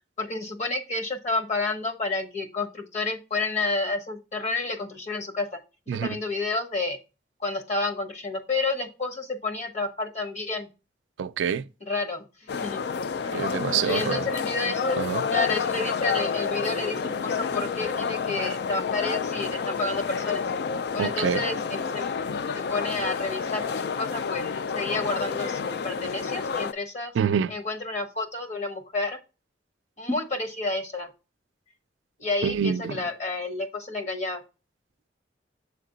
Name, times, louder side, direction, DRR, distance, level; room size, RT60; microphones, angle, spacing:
voice 1, 0.2-5.5 5.9-7.0 7.4-10.7 11.9-12.2 12.6-12.8 13.3-13.4 13.8-15.0 15.3-20.4 20.9-22.1 22.5-23.7 24.0-27.1 27.5-29.2 30.0-31.1 32.2-34.4, left 3 dB, 40° left, 1.0 m, -30 dB
voice 2, 11.2-11.6 13.3-14.3 15.0-15.3 21.0-21.4 27.1-27.5 32.4-33.0, right 7 dB, 90° right, 0.3 m, -26 dB
sound 1, 12.5-26.7, left 5 dB, 60° left, 0.4 m, -29 dB
7.4 x 3.3 x 3.9 m
head